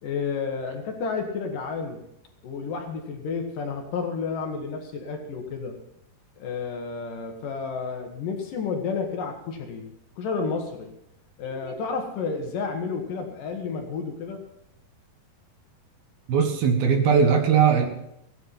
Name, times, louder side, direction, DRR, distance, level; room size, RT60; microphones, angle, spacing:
voice 1, 0.0-2.0 2.4-5.8 6.4-10.9 11.4-14.4, left 5 dB, 65° left, 3 dB, 2.8 m, -31 dB
voice 2, 16.3-17.9, right 6 dB, 70° right, 5 dB, 3.2 m, -20 dB
16.5 x 9.6 x 5.7 m, 0.79 s
omnidirectional pair, 4.7 m